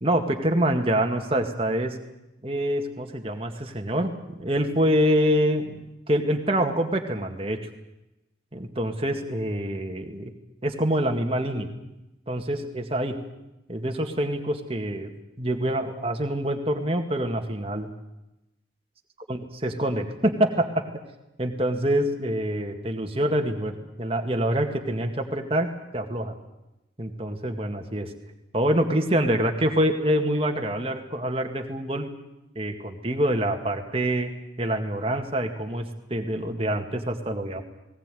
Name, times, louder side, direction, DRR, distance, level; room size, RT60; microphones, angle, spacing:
voice 1, 0.0-2.0 2.4-5.8 6.1-7.6 8.5-10.3 10.6-11.7 12.3-13.1 13.7-15.1 15.4-17.9 19.3-20.8 21.4-26.3 27.0-28.1 28.5-32.1 32.6-34.3 34.6-37.6, right 1 dB, 30° right, 4 dB, 2.1 m, -26 dB
19.5 x 19.0 x 9.3 m, 0.96 s
head